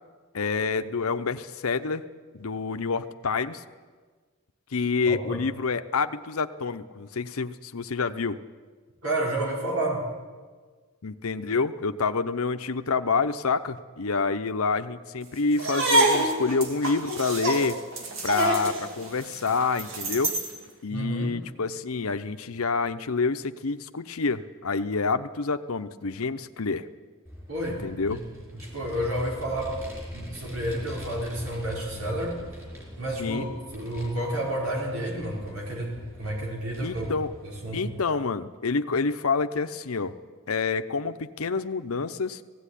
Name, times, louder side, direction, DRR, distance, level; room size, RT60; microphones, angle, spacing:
voice 1, 0.3-2.0 2.3-3.6 4.7-8.4 11.0-17.8 18.2-20.3 20.8-26.9 27.8-28.2 33.2-33.5 36.8-37.3 37.7-40.1 40.5-42.4, left 4 dB, 85° left, 10 dB, 0.8 m, -28 dB
voice 2, 5.1-5.4 9.0-10.1 20.9-21.4 27.5-28.2 28.6-29.8 30.1-32.4 33.0-38.0, right 1 dB, 85° right, -2 dB, 5.2 m, -30 dB
sound 1, 15.5-20.6, right 2 dB, 65° right, 2.8 m, -26 dB
Vehicle, 27.3-38.1, equal, 10° right, 4.9 m, -43 dB
17.0 x 16.5 x 10.0 m, 1.5 s
head